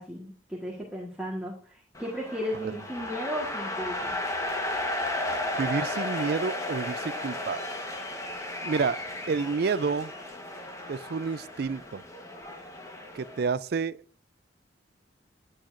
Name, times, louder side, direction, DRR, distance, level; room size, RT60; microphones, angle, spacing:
voice 1, 0.0-4.2, equal, 5° right, 1.5 m, -35 dB
sound 1, 1.9-13.5, left 1 dB, 15° left, 1.2 m, -34 dB
voice 2, 5.6-7.6 8.6-9.0 9.3-10.1 10.9-12.0 13.1-14.0, right 5 dB, 55° right, 0.4 m, -29 dB
9.9 x 8.7 x 2.6 m
head